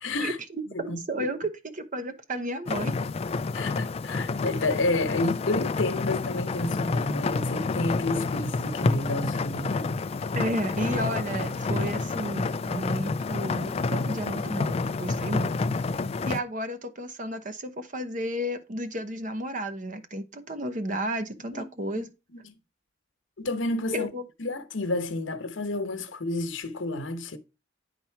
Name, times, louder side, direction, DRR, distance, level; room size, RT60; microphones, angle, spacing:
voice 1, 0.0-0.4 0.7-1.3 3.5-10.0 21.5-21.7 22.0-22.1 22.4-22.5 23.4-24.1 24.4-27.4, left 2 dB, 90° left, 1.1 m, -30 dB
voice 2, 0.8-2.9 10.3-15.8 16.3-22.1 23.9-24.2, right 1 dB, 40° right, 0.9 m, -32 dB
sound 1, 2.7-16.4, left 3 dB, 30° left, 0.3 m, -29 dB
10.0 x 4.2 x 4.6 m
head